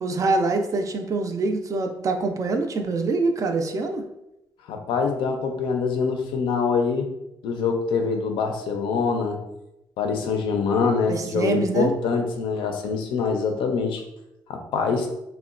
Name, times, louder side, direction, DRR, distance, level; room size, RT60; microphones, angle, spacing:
voice 1, 0.0-4.0 11.1-11.9, right 3 dB, 40° right, 5 dB, 0.3 m, -24 dB
voice 2, 4.7-7.1 7.4-9.4 10.0-14.0 14.5-15.1, left 5 dB, 90° left, 4 dB, 0.4 m, -24 dB
2.8 x 2.1 x 2.4 m, 0.88 s
cardioid pair, 95°, 8 cm